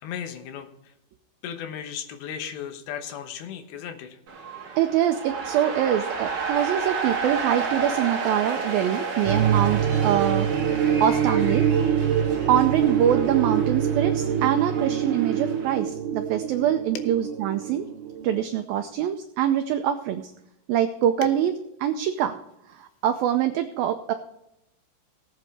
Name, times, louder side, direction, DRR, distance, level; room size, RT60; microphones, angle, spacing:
voice 1, 0.0-0.9 1.4-4.2 21.2-21.3, left 8 dB, 80° left, 7 dB, 3.3 m, -35 dB
sound 1, 4.3-15.8, right 5 dB, 50° right, 3.0 m, -32 dB
voice 2, 4.8-10.5 11.0-11.7 12.5-17.9 18.2-20.3 20.7-21.5 21.8-22.4 22.8-24.1, right 10 dB, 85° right, 7 dB, 2.0 m, -24 dB
sound 2, 9.3-18.4, right 8 dB, 70° right, 3.2 m, -25 dB
18.5 x 8.1 x 3.4 m, 0.85 s
omnidirectional pair, 5.0 m